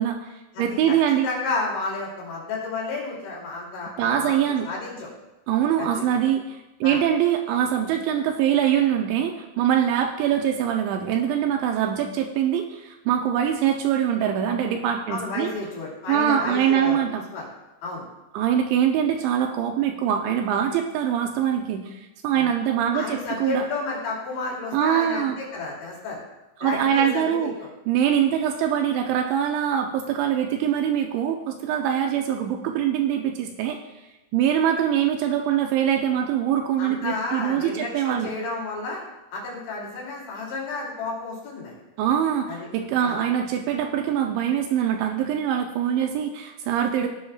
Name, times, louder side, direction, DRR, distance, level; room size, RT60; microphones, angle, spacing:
voice 1, 0.0-1.3 4.0-4.7 5.5-15.5 16.1-17.2 18.3-21.9 22.2-23.7 24.7-25.4 26.6-27.5 27.9-33.8 34.3-38.3 42.0-47.1, right 9 dB, 80° right, 3 dB, 2.8 m, -23 dB
voice 2, 0.5-1.0 1.2-5.1 5.8-6.2 6.8-7.0 15.1-17.5 17.8-18.0 22.3-22.5 22.9-26.2 26.6-27.7 36.8-39.0 39.3-41.8 42.5-42.7 43.0-43.2, left 3 dB, 70° left, -4 dB, 5.1 m, -32 dB
17.0 x 8.7 x 2.4 m, 1.0 s
omnidirectional pair, 5.6 m